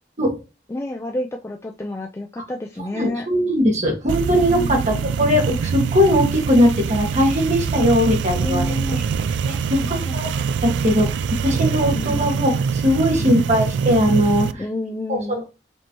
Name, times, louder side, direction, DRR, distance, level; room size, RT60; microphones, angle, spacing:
voice 1, 0.7-3.3 4.5-5.0 8.4-9.0 9.8-10.2 11.9-12.3 13.2-13.4 14.6-15.4, left 1 dB, 15° left, 2 dB, 0.3 m, -29 dB
voice 2, 2.9-8.7 8.9-9.0 9.5-10.3 10.6-11.2 11.4-14.6 15.1-15.2, equal, 40° right, 1 dB, 1.5 m, -19 dB
sound 1, 4.1-14.5, right 6 dB, 85° right, 0.3 m, -24 dB
5.1 x 3.0 x 2.9 m, 0.28 s
head